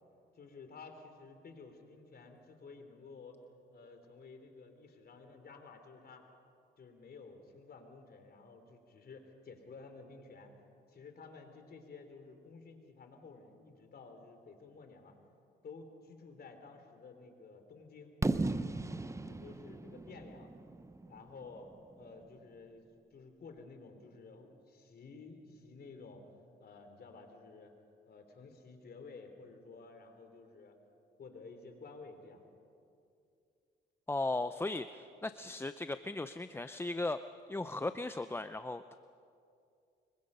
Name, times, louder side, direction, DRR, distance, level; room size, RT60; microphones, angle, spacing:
voice 1, 0.3-3.4 3.7-6.2 6.8-10.5 10.9-15.1 15.6-18.1 19.2-20.5 21.1-21.7 21.9-22.9 23.1-26.2 26.6-27.7 28.1-30.7 31.2-32.4, left 4 dB, 50° left, 6 dB, 3.2 m, -53 dB
Fireworks, 18.2-22.1, right 2 dB, 15° right, 0.8 m, -36 dB
voice 2, 34.1-37.2 37.5-38.9, left 2 dB, 10° left, 11 dB, 0.5 m, -37 dB
24.5 x 22.5 x 5.5 m, 2.5 s
cardioid pair, 90°, 20 cm